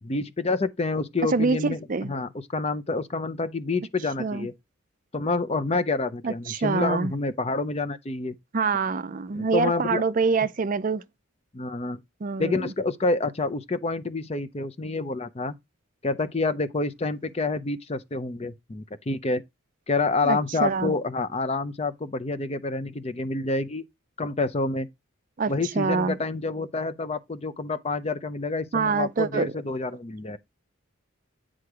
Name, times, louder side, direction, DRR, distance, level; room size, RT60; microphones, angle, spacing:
voice 1, 0.0-4.5 5.1-8.4 9.3-10.0 11.5-12.0 12.4-15.5 16.0-19.4 19.9-23.8 24.2-24.9 25.5-30.4, left 3 dB, 30° left, 0.5 m, -28 dB
voice 2, 1.2-2.1 4.2-4.5 6.2-7.1 8.5-11.0 12.2-12.7 20.2-20.9 25.4-26.2 28.7-29.5, right 4 dB, 40° right, 0.4 m, -25 dB
9.6 x 3.7 x 4.7 m
head